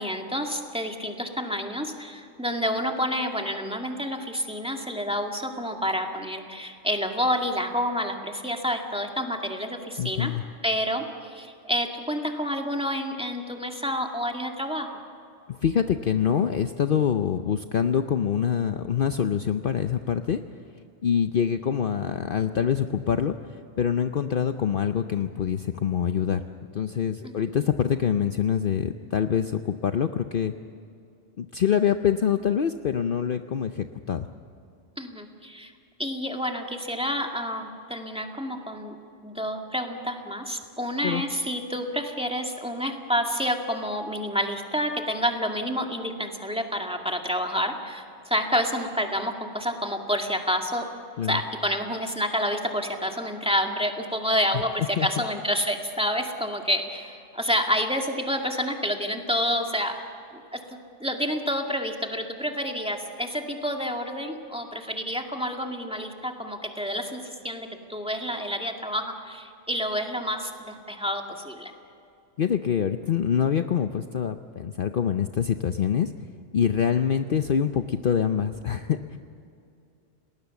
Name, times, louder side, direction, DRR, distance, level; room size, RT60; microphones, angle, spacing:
voice 1, 0.0-10.3 10.6-15.0 27.2-27.3 35.0-35.7 36.0-39.0 39.2-50.9 51.3-60.0 60.3-60.6 61.0-71.7, equal, 5° right, 2 dB, 2.1 m, -29 dB
voice 2, 10.0-10.4 15.5-20.4 21.0-26.4 26.7-30.5 31.4-34.3 41.0-41.2 51.2-51.4 55.0-55.1 72.4-76.1 76.5-79.2, left 8 dB, 55° left, 8 dB, 0.8 m, -25 dB
29.5 x 19.0 x 7.1 m, 2.5 s
omnidirectional pair, 1.2 m